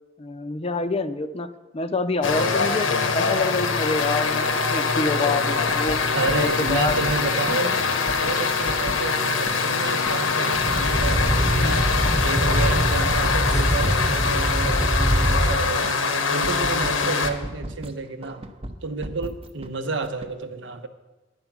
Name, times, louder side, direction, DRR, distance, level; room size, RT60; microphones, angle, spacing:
voice 1, 0.2-6.0 6.3-7.0 7.5-7.6, left 3 dB, 30° left, 11 dB, 0.5 m, -27 dB
sound 1, 2.2-17.3, left 4 dB, 90° left, 1.0 m, -23 dB
sound 2, 5.3-7.6 8.1-9.0 9.5-10.4 10.7-10.8 11.1-12.3 12.6-14.7 15.1-15.3 15.6-17.9 18.2-19.7 20.0-20.3, right 1 dB, 30° right, 0.7 m, -37 dB
voice 2, 6.1-7.8 8.2-11.9 12.2-16.0 16.3-18.4 18.8-20.9, right 3 dB, 65° right, 8 dB, 0.8 m, -30 dB
sound 3, 10.5-15.5, equal, 5° right, 1.0 m, -23 dB
10.5 x 8.9 x 6.0 m, 1.2 s
head